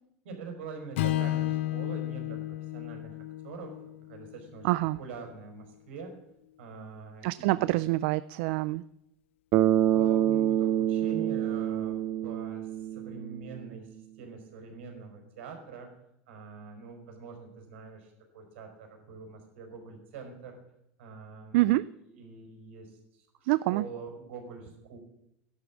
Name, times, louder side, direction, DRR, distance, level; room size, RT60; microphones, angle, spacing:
voice 1, 0.2-3.7 4.1-4.7 4.9-6.1 6.6-7.7 9.8-15.9 16.3-20.6 21.0-25.0, right 5 dB, 90° right, 4 dB, 5.0 m, -44 dB
Strum, 1.0-5.3, left 14 dB, 90° left, 0.7 m, -33 dB
voice 2, 4.6-5.0 7.2-8.8 21.5-21.9 23.5-23.8, right 18 dB, 70° right, 17 dB, 0.4 m, -26 dB
Bass guitar, 9.5-13.5, right 11 dB, 55° right, 0.8 m, -26 dB
13.5 x 11.0 x 7.3 m, 0.78 s
supercardioid pair, 125°, 6 cm